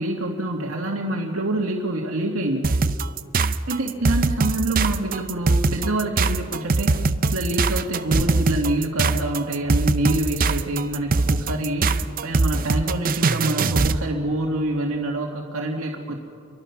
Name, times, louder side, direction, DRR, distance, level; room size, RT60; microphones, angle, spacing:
voice 1, 0.0-2.6 3.7-6.9 7.3-11.9 12.2-16.2, right 1 dB, 80° right, 0 dB, 2.2 m, -26 dB
sound 1, 2.6-14.0, right 3 dB, 45° right, 0.6 m, -21 dB
29.0 x 23.5 x 6.1 m, 2.3 s
head